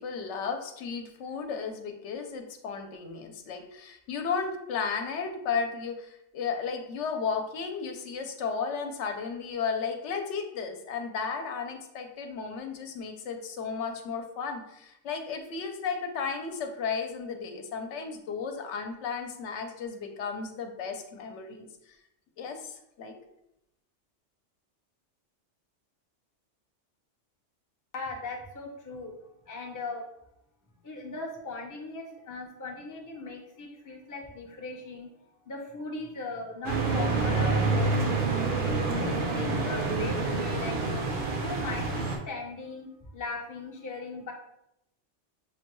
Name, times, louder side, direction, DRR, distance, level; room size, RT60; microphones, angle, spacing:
voice 1, 0.0-22.0 22.4-23.2, left 5 dB, 75° left, 5 dB, 0.9 m, -34 dB
voice 2, 27.9-29.1 29.5-30.1 30.8-38.2 38.6-44.3, left 3 dB, 20° left, 0 dB, 0.5 m, -39 dB
sound 1, 36.6-42.2, right 3 dB, 60° right, 0.9 m, -27 dB
6.2 x 2.2 x 3.0 m, 0.81 s
omnidirectional pair, 1.2 m